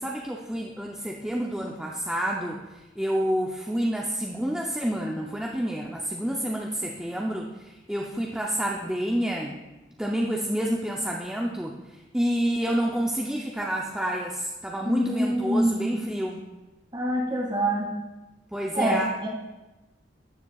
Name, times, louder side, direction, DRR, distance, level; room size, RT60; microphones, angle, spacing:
voice 1, 0.0-9.6 10.0-16.4 18.5-19.3, equal, 5° right, -1 dB, 0.5 m, -29 dB
voice 2, 14.8-16.0 16.9-17.9 18.7-19.3, right 1 dB, 25° right, -3 dB, 2.1 m, -25 dB
13.0 x 7.3 x 2.3 m, 1.1 s
head